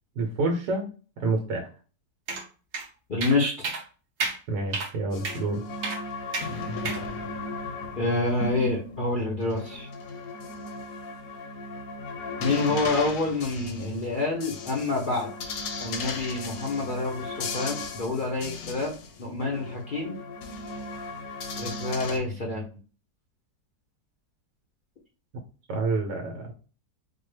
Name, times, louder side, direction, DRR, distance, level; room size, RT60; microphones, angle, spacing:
voice 1, 0.2-0.9 1.2-1.7 4.5-5.6 25.7-26.5, right 3 dB, 80° right, 2 dB, 1.3 m, -28 dB
sound 1, 2.3-2.4 2.7-2.9 3.2-3.4 3.6-3.8 4.2-4.4 4.7-4.9 5.2-5.4 5.8-6.0 6.3-6.5 6.9-7.0, right 3 dB, 55° right, 1.0 m, -30 dB
voice 2, 3.1-3.7 7.9-9.9 12.4-15.3 15.8-18.9 19.2-20.2 21.6-22.7, left 2 dB, 85° left, -2 dB, 0.4 m, -27 dB
sound 2, 5.1-22.2, left 3 dB, 65° left, 0.9 m, -36 dB
4.3 x 2.1 x 3.1 m, 0.36 s
omnidirectional pair, 1.9 m